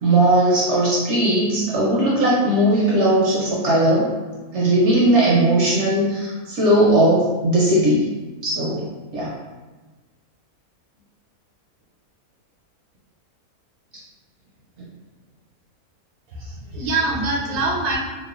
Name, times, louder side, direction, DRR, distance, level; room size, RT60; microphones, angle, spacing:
voice 1, 0.0-4.1 4.5-8.0 8.4-9.3, right 1 dB, 70° right, -5 dB, 0.7 m, -18 dB
voice 2, 16.3-18.0, right 2 dB, 85° right, -1 dB, 1.1 m, -24 dB
2.9 x 2.1 x 2.3 m, 1.3 s
omnidirectional pair, 1.6 m